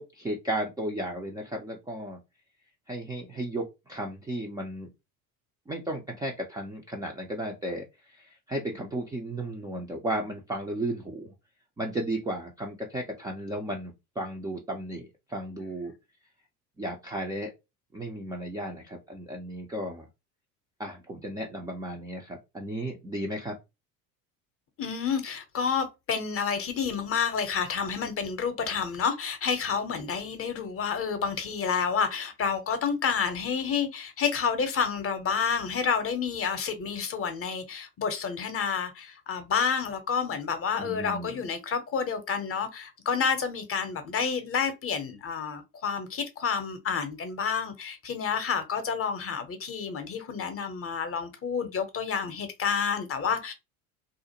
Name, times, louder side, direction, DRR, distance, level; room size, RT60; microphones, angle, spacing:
voice 1, 0.0-2.2 2.9-4.9 5.7-11.3 11.8-15.9 16.8-17.5 17.9-20.1 20.8-23.6 40.8-41.5, right 1 dB, 10° right, 0.3 m, -34 dB
voice 2, 24.8-53.5, left 6 dB, 30° left, 0.7 m, -29 dB
2.4 x 2.1 x 2.8 m
hypercardioid pair, 70°, 44 cm